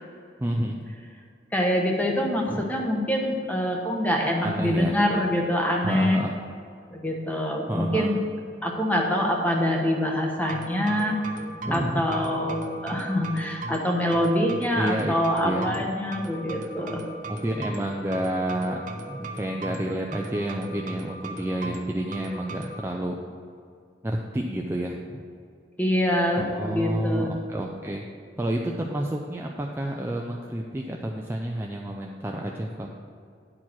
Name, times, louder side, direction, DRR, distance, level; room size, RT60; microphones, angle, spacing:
voice 1, 0.4-0.9 2.5-2.7 4.4-5.0 5.8-6.4 7.7-8.1 11.7-12.0 14.7-15.1 15.4-15.9 17.3-23.2 24.0-25.2 26.4-28.0 28.4-32.9, right 1 dB, 15° right, 0 dB, 0.4 m, -30 dB
voice 2, 1.5-6.2 6.9-8.2 8.6-11.3 11.7-12.6 12.8-17.0 25.8-27.3, equal, 10° left, 0 dB, 1.1 m, -25 dB
sound 1, 10.5-22.7, right 2 dB, 45° right, 0.8 m, -37 dB
9.9 x 4.5 x 6.1 m, 2.3 s
head